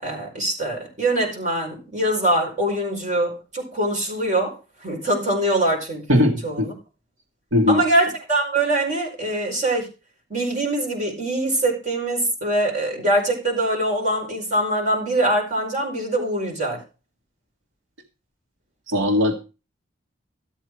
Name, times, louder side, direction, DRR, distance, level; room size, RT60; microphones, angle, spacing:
voice 1, 0.0-4.6 4.8-6.7 7.7-9.8 10.3-16.8, right 1 dB, 35° right, -1 dB, 5.0 m, -23 dB
voice 2, 6.1-6.7 7.5-7.8 18.9-19.4, left 1 dB, 90° right, 3 dB, 1.6 m, -19 dB
13.0 x 8.2 x 4.7 m, 0.31 s
head